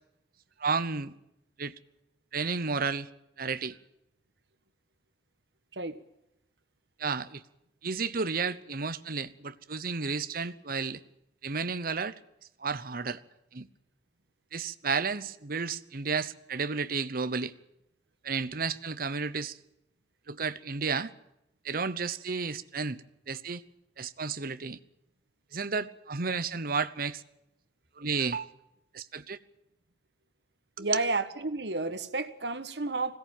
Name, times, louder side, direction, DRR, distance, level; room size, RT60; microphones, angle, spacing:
voice 1, 0.6-1.1 1.6-1.7 2.3-3.1 3.4-3.8 7.0-7.4 7.8-11.0 11.4-12.2 12.6-13.2 13.5-13.7 14.5-17.5 18.2-19.6 20.3-21.1 21.6-23.6 24.0-24.8 25.5-27.2 28.0-28.5 28.9-29.4 30.8-30.9, right 5 dB, 55° right, 1.0 m, -32 dB
voice 2, 30.8-33.2, right 3 dB, 70° right, 1.6 m, -31 dB
21.0 x 17.0 x 9.1 m
head